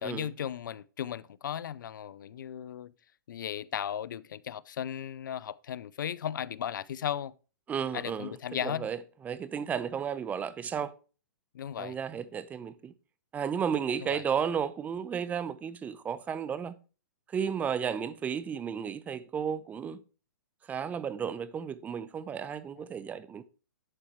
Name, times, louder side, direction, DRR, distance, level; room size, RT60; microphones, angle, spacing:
voice 1, 0.0-2.9 3.3-7.3 7.9-8.9 11.5-12.0 14.0-14.2, left 9 dB, 70° left, 0.5 m, -36 dB
voice 2, 7.7-10.9 11.8-12.9 13.3-16.7 17.3-20.0 20.6-23.4, right 7 dB, 15° right, 0.6 m, -33 dB
11.0 x 4.5 x 4.6 m
hypercardioid pair, 135°, 11 cm